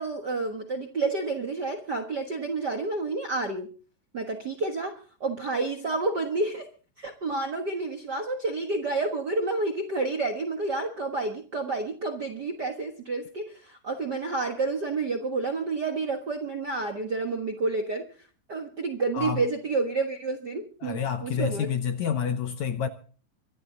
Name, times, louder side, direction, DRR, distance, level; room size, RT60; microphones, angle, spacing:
voice 1, 0.0-3.7 4.1-6.7 7.0-18.1 18.5-21.7, right 3 dB, 55° right, 1.2 m, -29 dB
voice 2, 20.8-22.9, left 7 dB, 70° left, 1.8 m, -28 dB
24.5 x 11.5 x 3.9 m
omnidirectional pair, 4.1 m